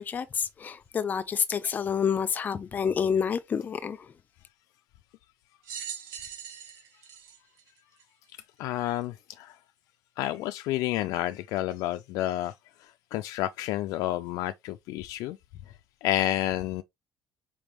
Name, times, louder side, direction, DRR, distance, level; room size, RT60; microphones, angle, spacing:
voice 1, 0.0-4.0, left 7 dB, 30° left, 0.6 m, -28 dB
sound 1, 5.6-8.3 9.0-9.1 10.2-10.3, right 8 dB, 80° right, 1.9 m, -41 dB
voice 2, 8.6-9.6 10.2-12.5 13.1-15.4 16.0-16.8, left 15 dB, 85° left, 0.4 m, -30 dB
4.8 x 3.5 x 3.0 m
cardioid pair, 150°, 6 cm